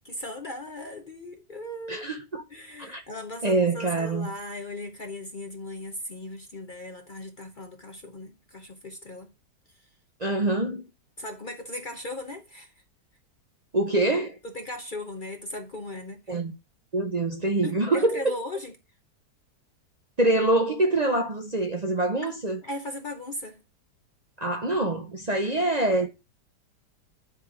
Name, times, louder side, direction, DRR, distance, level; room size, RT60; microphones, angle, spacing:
voice 1, 0.0-2.1 2.5-9.3 9.7-9.9 11.2-12.7 14.4-16.4 17.6-18.7 22.2-23.6, left 1 dB, 45° left, 0.6 m, -38 dB
voice 2, 1.9-2.4 2.8-3.0 3.4-4.3 10.2-10.8 13.7-14.4 16.3-16.5 16.9-18.2 20.2-22.6 24.4-26.1, right 2 dB, 40° right, 0.6 m, -25 dB
10.0 x 3.6 x 4.9 m
omnidirectional pair, 1.8 m